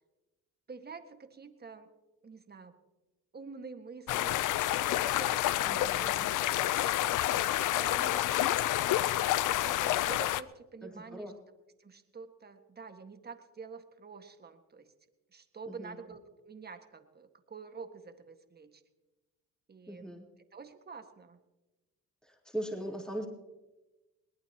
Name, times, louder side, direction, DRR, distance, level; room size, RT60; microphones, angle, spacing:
voice 1, 0.7-1.9 2.2-2.8 3.3-6.3 6.6-6.9 7.4-9.1 9.5-11.3 11.8-14.9 15.3-18.8 19.7-20.2 20.5-21.4, right 5 dB, 30° right, 7 dB, 1.8 m, -48 dB
sound 1, 4.1-10.4, left 14 dB, 65° left, 0.6 m, -29 dB
voice 2, 5.6-6.3 10.8-11.3 15.7-15.9 19.9-20.2 22.3-23.3, right 1 dB, ahead, -1 dB, 3.8 m, -40 dB
21.5 x 19.0 x 3.0 m, 1.1 s
supercardioid pair, 85°, 33 cm